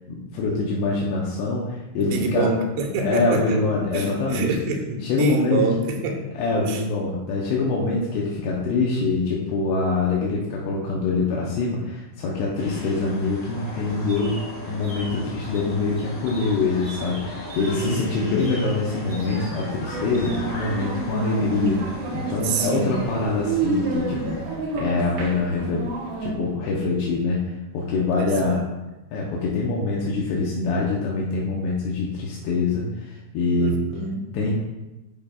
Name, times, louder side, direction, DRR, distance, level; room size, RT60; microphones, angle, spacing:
voice 1, 0.1-2.5 3.0-4.5 5.0-5.6 6.4-21.8 22.1-24.4 24.7-25.9 26.2-28.6 29.1-33.8 34.3-34.5, left 3 dB, 80° left, -3 dB, 3.0 m, -24 dB
voice 2, 2.0-3.6 3.9-6.3 6.6-6.8 17.8-18.6 22.4-23.0 28.2-28.6 33.6-34.2, right 3 dB, 85° right, 2 dB, 3.0 m, -27 dB
sound 1, 12.6-24.5, left 1 dB, 45° left, 2.5 m, -38 dB
sound 2, 14.1-14.4 14.8-15.1 15.5-15.6 16.0-16.5 16.8-17.2 17.5-18.0 18.4-18.7 19.1-19.9 20.1-20.4, right 2 dB, 35° right, 2.0 m, -41 dB
sound 3, 19.9-26.3, right 3 dB, 65° right, 2.3 m, -29 dB
11.5 x 5.2 x 2.4 m, 1.0 s
omnidirectional pair, 4.8 m